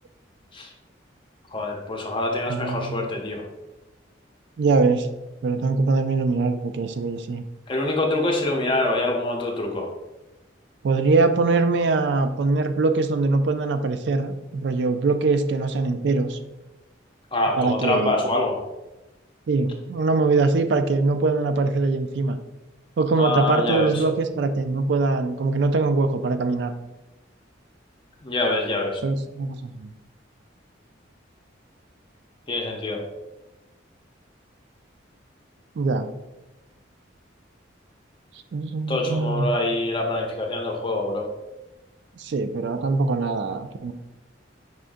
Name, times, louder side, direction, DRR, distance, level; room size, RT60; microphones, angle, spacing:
voice 1, 1.5-3.4 7.7-9.9 17.3-18.6 23.2-23.9 28.2-29.0 32.5-33.0 38.9-41.3, left 2 dB, 25° left, 1 dB, 0.6 m, -25 dB
voice 2, 2.5-3.1 4.6-5.1 5.4-7.4 10.8-16.4 17.6-18.2 19.5-22.4 23.0-26.7 29.0-29.9 35.8-36.1 38.5-39.5 42.2-43.9, right 3 dB, 60° right, 9 dB, 0.3 m, -22 dB
5.5 x 3.6 x 2.6 m, 1.0 s
head